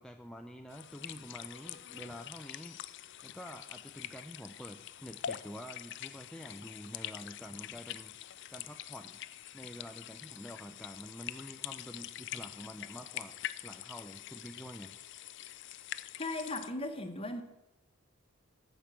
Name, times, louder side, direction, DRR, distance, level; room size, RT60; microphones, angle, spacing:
voice 1, 0.0-2.8 3.2-9.2 9.5-14.9, equal, 5° left, 4 dB, 0.5 m, -48 dB
sound 1, 0.7-16.7, left 11 dB, 60° left, 0.4 m, -45 dB
voice 2, 16.2-17.4, left 2 dB, 25° left, 7 dB, 1.1 m, -37 dB
13.5 x 5.3 x 7.4 m, 0.93 s
head